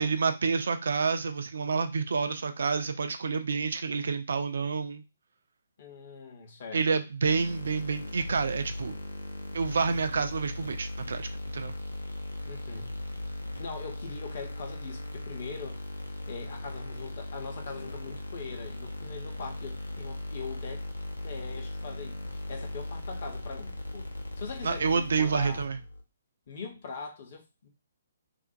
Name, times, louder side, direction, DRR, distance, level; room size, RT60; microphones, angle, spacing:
voice 1, 0.0-5.0 6.7-9.0 9.5-11.7 24.6-25.8, right 5 dB, 60° right, 8 dB, 0.4 m, -28 dB
voice 2, 5.8-7.0 12.4-13.0 13.6-15.8 16.3-20.9 21.2-25.7 26.5-27.7, left 5 dB, 45° left, 2 dB, 0.7 m, -42 dB
sound 1, 7.2-26.0, left 1 dB, 85° left, 0.6 m, -38 dB
2.5 x 2.1 x 2.6 m, 0.28 s
figure-of-eight pair, 135°, 0 cm